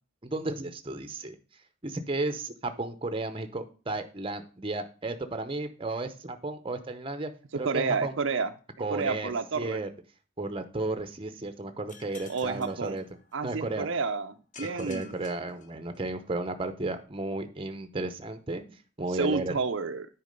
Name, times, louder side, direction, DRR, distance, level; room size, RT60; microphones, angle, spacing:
voice 1, 0.3-1.4 1.8-8.1 8.8-9.3 9.6-9.9 10.4-13.0 13.4-13.9 14.6-19.5, right 2 dB, 25° right, 8 dB, 0.7 m, -33 dB
voice 2, 7.6-8.5 8.9-9.8 12.3-13.0 13.3-15.1 19.1-20.1, right 4 dB, 60° right, 8 dB, 0.5 m, -30 dB
sound 1, 11.9-13.6 14.5-16.3, left 5 dB, 35° left, 1.0 m, -51 dB
9.6 x 4.8 x 5.2 m, 0.37 s
head